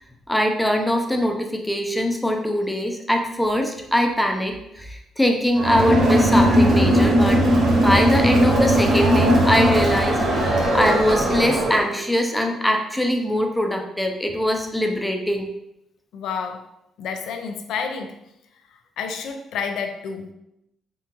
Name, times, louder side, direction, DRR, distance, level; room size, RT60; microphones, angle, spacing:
voice 1, 0.3-7.4 7.7-15.5, equal, 5° left, 3 dB, 0.6 m, -22 dB
Crowd, 5.5-11.9, equal, 65° right, 1.0 m, -18 dB
voice 2, 16.1-16.7 17.0-18.2 19.0-20.3, left 6 dB, 80° left, 6 dB, 0.5 m, -29 dB
3.7 x 3.5 x 2.9 m, 0.83 s
cardioid pair, 90°, 0 cm